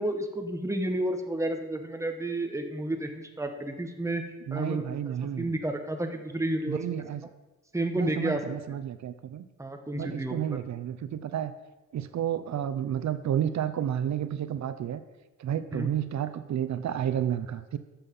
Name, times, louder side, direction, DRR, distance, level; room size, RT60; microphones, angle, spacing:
voice 1, 0.0-4.2 4.5-5.0 5.4-7.0 7.7-8.4 8.7-8.8 9.6-10.4 15.7-15.9, right 1 dB, 10° right, 5 dB, 1.2 m, -31 dB
voice 2, 4.5-5.5 6.7-7.2 7.9-9.4 9.9-11.5 11.9-15.0 15.4-17.8, right 10 dB, 70° right, 12 dB, 0.6 m, -31 dB
12.5 x 7.1 x 5.4 m, 1.1 s
wide cardioid pair, 135°, 29 cm